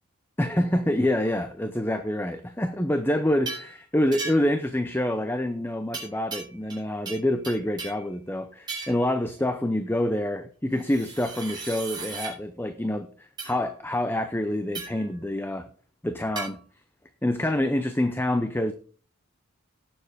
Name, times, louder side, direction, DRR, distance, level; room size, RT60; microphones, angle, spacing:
voice 1, 0.4-15.7 16.0-16.6 17.2-18.7, left 1 dB, 10° left, 9 dB, 0.6 m, -26 dB
sound 1, 3.5-3.7 4.1-4.6 5.9-6.8 7.1-8.1 8.7-9.1 10.8-12.3 13.4-13.6 14.7-15.1 16.4-16.5, right 4 dB, 20° right, 4.4 m, -36 dB
18.0 x 7.0 x 3.5 m, 0.42 s
head